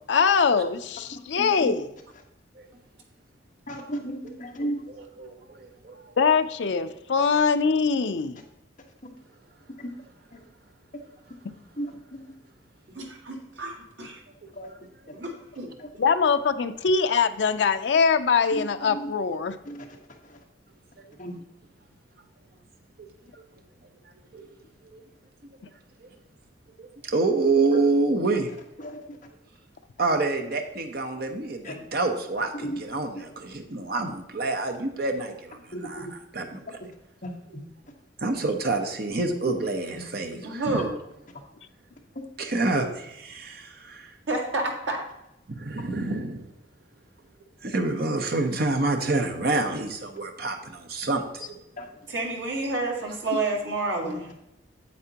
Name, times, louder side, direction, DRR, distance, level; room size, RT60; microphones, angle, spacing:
voice 1, 0.1-1.9 6.2-8.4 16.0-19.6, left 5 dB, 70° left, 9 dB, 0.5 m, -22 dB
voice 2, 1.4-1.7 3.7-4.8 9.8-9.9 11.8-12.2 14.5-14.7 15.8-15.9 18.5-19.1 19.6-19.8 20.3-20.4 21.2-21.3 28.8-29.0 31.6-31.8 32.6-32.8 35.7-36.1 37.2-37.6 39.5-39.6 40.3-40.4 51.8-51.9 54.0-54.3, right 1 dB, 45° left, 0 dB, 1.3 m, -35 dB
voice 3, 4.6-6.1 23.0-23.1 24.3-24.5 24.9-25.0 26.8-28.5 30.0-36.8 38.2-40.8 42.4-44.1 45.5-46.5 47.6-51.5, right 3 dB, 55° right, 4 dB, 0.8 m, -27 dB
voice 4, 12.9-14.2 15.1-15.7 40.4-40.9 44.3-45.0 52.1-54.3, right 2 dB, 80° right, 0 dB, 1.8 m, -29 dB
8.4 x 8.1 x 2.9 m, 0.86 s
head